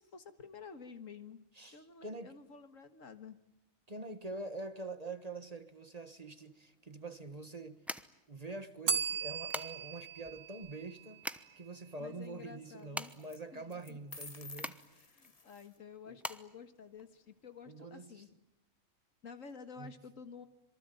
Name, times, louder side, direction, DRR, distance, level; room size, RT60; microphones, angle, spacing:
voice 1, 0.0-1.4 1.7-3.4 12.0-13.1 13.5-14.0 14.9-18.3 19.2-20.5, left 6 dB, 70° left, 2.0 m, -51 dB
voice 2, 1.5-2.3 3.9-7.8 8.3-11.2 11.6-15.1 16.0-16.2 17.7-18.2 19.8-20.0, right 2 dB, 30° right, 1.4 m, -45 dB
sound 1, 6.4-17.6, equal, ahead, 0.8 m, -46 dB
Bell, 8.9-11.7, right 6 dB, 65° right, 1.7 m, -38 dB
sound 2, 10.2-10.7 13.0-13.4 13.7-15.8, left 3 dB, 30° left, 1.3 m, -51 dB
26.5 x 23.5 x 9.3 m
omnidirectional pair, 1.4 m